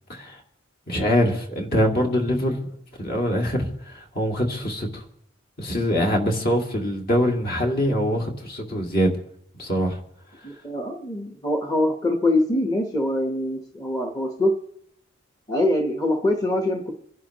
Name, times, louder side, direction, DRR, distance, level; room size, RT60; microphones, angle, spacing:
voice 1, 0.9-2.7 3.0-5.0 5.6-9.1 9.6-10.0, equal, 45° left, 1 dB, 2.3 m, -23 dB
voice 2, 10.4-14.5 15.5-16.9, left 1 dB, 15° left, 3 dB, 1.2 m, -24 dB
27.0 x 11.0 x 3.1 m, 0.75 s
head